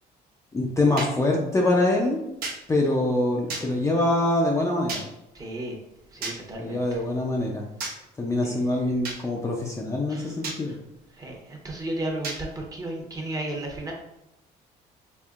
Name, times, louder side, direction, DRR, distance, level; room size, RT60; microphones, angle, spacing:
voice 1, 0.5-2.2 2.7-5.0 6.6-7.6 8.2-10.7, left 2 dB, 15° left, -1 dB, 0.5 m, -24 dB
sound 1, 1.0-1.1 2.4-2.6 3.5-3.7 4.9-5.1 6.2-6.4 7.8-8.0 9.0-9.2 10.4-10.6 12.2-12.4, right 3 dB, 60° right, 0.9 m, -32 dB
voice 2, 5.3-5.8 6.1-7.0 8.4-8.6 10.1-10.4 10.6-10.8 11.1-13.9, right 1 dB, 20° right, -1 dB, 0.9 m, -34 dB
4.4 x 3.0 x 2.4 m, 0.91 s
cardioid pair, 110°, 17 cm